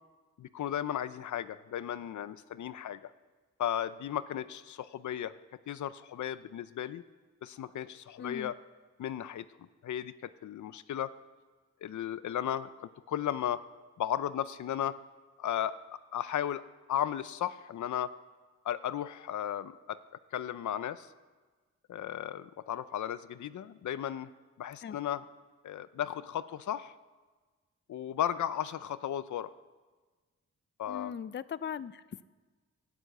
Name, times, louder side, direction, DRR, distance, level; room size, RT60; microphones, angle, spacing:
voice 1, 0.4-3.1 3.6-5.3 5.7-7.0 7.4-8.6 9.0-9.5 9.8-11.1 11.8-13.6 14.0-15.0 15.4-15.8 16.1-16.6 16.9-18.1 18.6-20.0 20.3-21.1 21.9-24.3 24.6-25.2 25.6-26.9 27.9-29.5 30.8-31.1, left 10 dB, 80° left, 15 dB, 0.6 m, -35 dB
voice 2, 8.2-8.5 24.8-25.0 30.9-32.2, left 8 dB, 40° left, 16 dB, 0.5 m, -39 dB
18.0 x 10.0 x 7.9 m, 1.4 s
cardioid pair, 95°, 29 cm